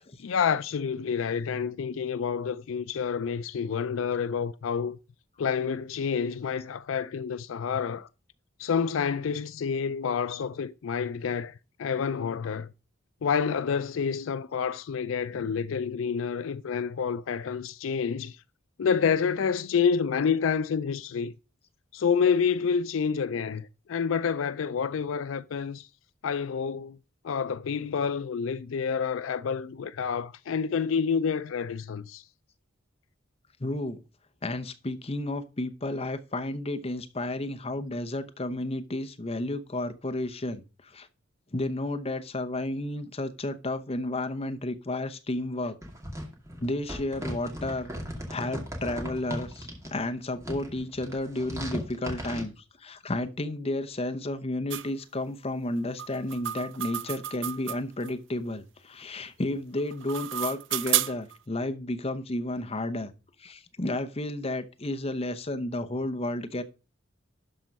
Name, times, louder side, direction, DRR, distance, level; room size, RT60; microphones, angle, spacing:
voice 1, 0.2-5.0 5.4-8.1 8.6-12.7 13.2-18.4 18.8-21.3 21.9-25.9 26.2-27.0 27.2-32.2, left 6 dB, 75° left, 0.4 m, -28 dB
voice 2, 33.6-34.0 34.4-41.1 41.5-45.8 46.6-47.9 48.3-63.1 63.4-66.6, left 1 dB, 30° left, 0.8 m, -32 dB
sound 1, 45.8-49.9 50.3-52.4, equal, 15° right, 2.5 m, -37 dB
sound 2, 54.7-54.9 56.0-58.1 59.8-61.4, right 12 dB, 65° right, 0.5 m, -31 dB
12.0 x 4.5 x 5.3 m
head